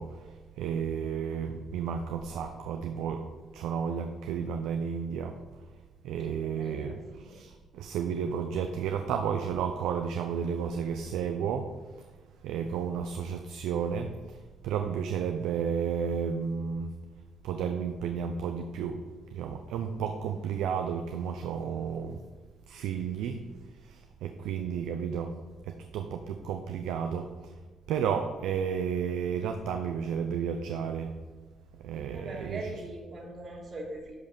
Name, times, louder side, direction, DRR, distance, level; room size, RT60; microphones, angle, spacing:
voice 1, 0.0-3.3 3.5-5.4 6.0-11.7 12.0-12.1 12.4-14.4 14.6-16.9 17.4-19.0 19.3-22.2 22.7-23.4 23.8-25.4 25.6-27.5 27.9-31.2 31.8-32.7, right 7 dB, 90° right, 6 dB, 0.6 m, -32 dB
voice 2, 6.2-7.4 24.4-24.8 32.1-34.2, right 1 dB, 55° right, -6 dB, 2.9 m, -42 dB
11.0 x 5.4 x 6.8 m, 1.4 s
cardioid pair, 90°, 0 cm